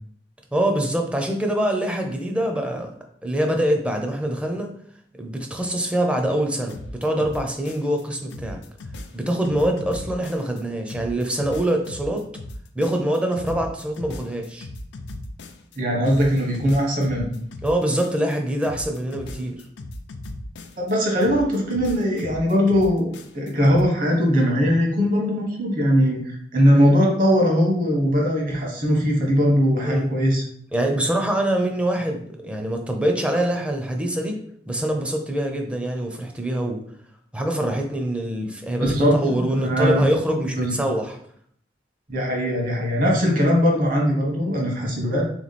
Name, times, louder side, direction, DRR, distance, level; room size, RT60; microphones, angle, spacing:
voice 1, 0.5-2.9 3.2-4.7 5.2-8.6 9.1-12.2 12.8-14.7 17.6-19.6 29.8-30.1 30.7-34.4 34.7-36.8 37.3-41.2, right 1 dB, 5° right, 3 dB, 0.5 m, -24 dB
sound 1, 6.7-8.0 8.3-10.6 10.9-15.8 16.0-18.4 18.6-20.9 21.2-23.8, left 1 dB, 80° left, 0.5 m, -37 dB
voice 2, 15.7-17.3 20.8-30.4 38.8-40.0 40.4-40.7 42.1-45.2, equal, 50° right, 0 dB, 1.2 m, -20 dB
3.5 x 3.1 x 4.1 m, 0.64 s
head